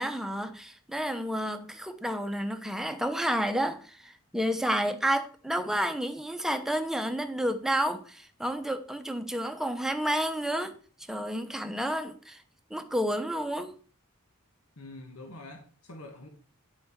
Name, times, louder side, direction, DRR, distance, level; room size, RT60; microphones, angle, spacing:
voice 1, 0.0-10.8 11.1-12.4 12.7-13.7, equal, ahead, 0.9 m, -30 dB
voice 2, 14.8-16.3, left 2 dB, 80° left, 1.5 m, -45 dB
10.5 x 6.1 x 4.6 m
head